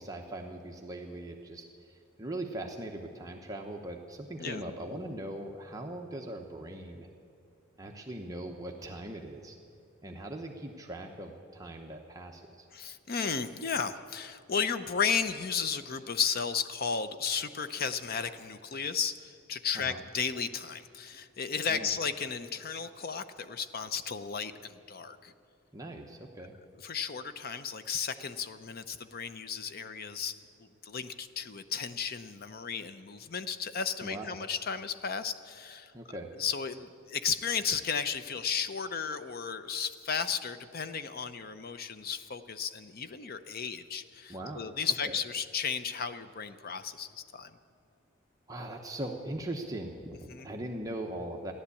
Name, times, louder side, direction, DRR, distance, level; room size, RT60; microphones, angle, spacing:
voice 1, 0.0-7.1 7.8-9.6 10.0-12.7 19.7-20.0 21.7-21.9 25.7-26.6 34.0-34.3 35.9-36.3 44.3-44.7 45.0-45.1 48.5-51.5, right 1 dB, 20° right, 1 dB, 0.9 m, -40 dB
voice 2, 12.7-25.3 26.8-35.9 36.4-47.6 50.3-50.5, left 6 dB, 50° left, 12 dB, 0.7 m, -34 dB
15.0 x 11.0 x 8.4 m, 2.5 s
head